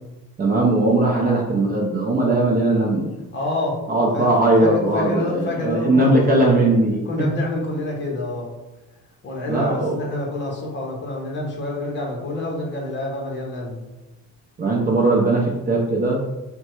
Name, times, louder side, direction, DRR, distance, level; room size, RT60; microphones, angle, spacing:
voice 1, 0.4-3.1 3.9-7.0 9.5-10.0 14.6-16.2, right 2 dB, 25° right, -2 dB, 0.5 m, -19 dB
voice 2, 3.3-3.8 4.1-4.3 4.6-6.5 7.0-8.5 9.2-13.8, left 2 dB, 30° left, -2 dB, 0.9 m, -27 dB
3.6 x 2.2 x 4.3 m, 1.1 s
cardioid pair, 155°, 36 cm